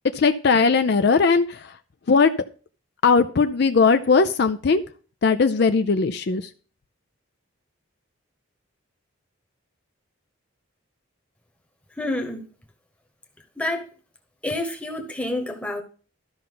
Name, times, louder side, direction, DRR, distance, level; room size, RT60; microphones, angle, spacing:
voice 1, 0.1-1.7 2.1-2.3 3.0-4.8 5.2-6.5, left 4 dB, 50° left, 0.4 m, -19 dB
voice 2, 12.0-12.4 13.6-13.9 14.4-15.8, left 1 dB, 5° left, 1.1 m, -28 dB
13.0 x 5.6 x 3.9 m
head